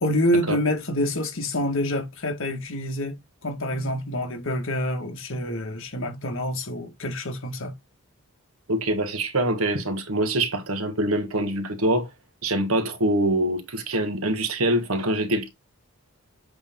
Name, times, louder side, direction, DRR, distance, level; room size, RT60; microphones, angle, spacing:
voice 1, 0.0-7.7, left 1 dB, 65° left, 1.9 m, -27 dB
voice 2, 8.7-12.1 12.4-15.5, right 1 dB, 80° right, 1.6 m, -24 dB
8.1 x 3.5 x 3.8 m
head